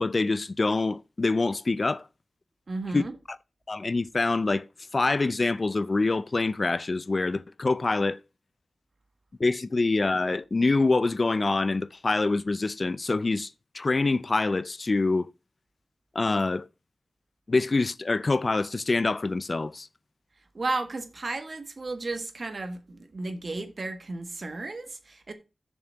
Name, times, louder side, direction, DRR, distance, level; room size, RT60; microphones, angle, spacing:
voice 1, 0.0-2.1 2.9-3.0 3.7-4.7 4.9-8.2 9.4-13.5 13.7-15.3 16.1-16.7 17.5-19.9, left 3 dB, 50° left, 0.5 m, -25 dB
voice 2, 2.7-3.1 20.5-25.3, right 2 dB, 55° right, 1.7 m, -33 dB
7.2 x 6.6 x 5.8 m
wide cardioid pair, 85°, 0 cm